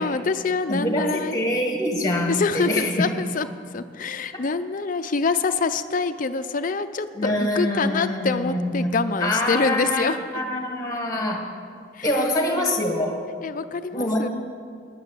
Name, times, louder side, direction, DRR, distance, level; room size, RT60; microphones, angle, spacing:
voice 1, 0.0-1.4 2.3-3.5 3.7-10.4 11.9-12.1 13.4-14.3, left 4 dB, 45° left, 10 dB, 0.5 m, -25 dB
voice 2, 0.7-3.1 4.3-4.4 7.2-8.9 9.2-11.5 12.0-13.2 13.9-14.2, left 1 dB, 20° left, 2 dB, 1.6 m, -25 dB
10.5 x 9.6 x 7.6 m, 2.3 s
head